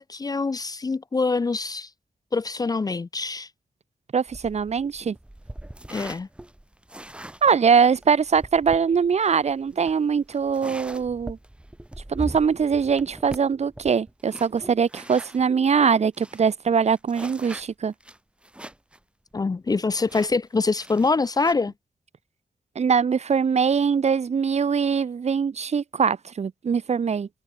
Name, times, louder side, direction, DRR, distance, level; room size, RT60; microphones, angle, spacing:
voice 1, 0.0-1.9 2.3-3.5 5.9-6.3 19.3-21.7, left 4 dB, 30° left, 0.7 m, -25 dB
voice 2, 4.1-5.2 7.4-11.4 12.1-17.9 22.8-27.3, right 6 dB, 55° right, 2.3 m, -22 dB
sound 1, 4.3-15.4 15.9-16.0 16.1-19.0 19.3-19.4 20.1-21.5, right 1 dB, 10° right, 2.1 m, -41 dB
wide cardioid pair, 120°, 13 cm